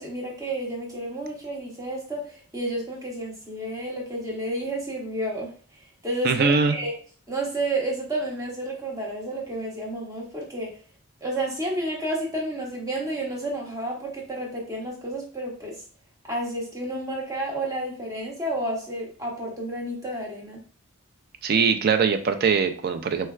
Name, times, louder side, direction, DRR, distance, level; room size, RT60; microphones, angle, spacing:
voice 1, 0.0-5.5 6.0-7.0 7.3-10.7 11.2-15.8 16.3-20.6, right 1 dB, 15° right, -2 dB, 0.7 m, -31 dB
voice 2, 6.2-6.7 21.4-23.3, right 5 dB, 45° right, 8 dB, 0.3 m, -21 dB
4.3 x 2.2 x 2.3 m, 0.43 s
head